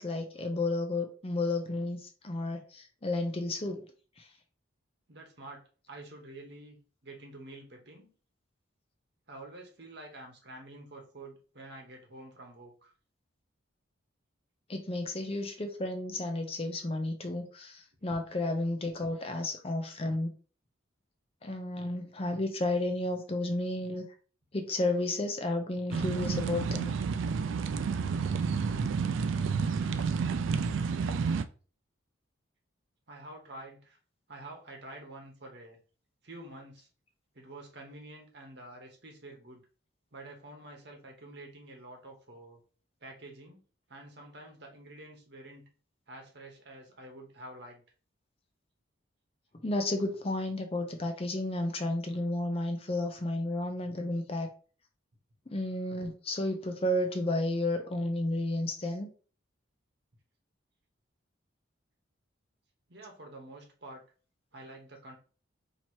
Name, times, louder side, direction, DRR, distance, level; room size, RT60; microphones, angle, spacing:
voice 1, 0.0-3.8 4.2-4.3 14.7-20.3 21.4-24.0 24.5-26.9 49.6-54.5 55.5-59.1, left 2 dB, 30° left, 5 dB, 0.5 m, -32 dB
voice 2, 5.1-8.1 9.3-12.9 33.1-34.0 34.3-35.8 36.2-36.9 37.3-39.7 40.1-42.6 43.0-43.6 43.9-45.7 46.1-47.8 62.9-64.0 64.5-65.2, right 2 dB, 55° right, 2 dB, 1.1 m, -48 dB
sound 1, 25.9-31.4, right 5 dB, 75° right, 0.3 m, -30 dB
2.9 x 2.9 x 4.5 m, 0.38 s
head